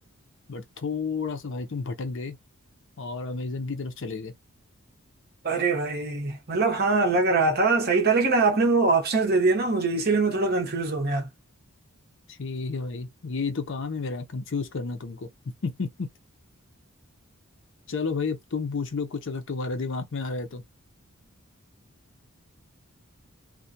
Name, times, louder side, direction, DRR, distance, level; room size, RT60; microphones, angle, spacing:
voice 1, 0.5-2.4 3.0-4.3 12.3-15.3 15.6-16.1 17.9-20.6, left 4 dB, 60° left, 0.6 m, -31 dB
voice 2, 5.4-11.3, right 3 dB, 45° right, 0.8 m, -23 dB
2.4 x 2.1 x 2.7 m
head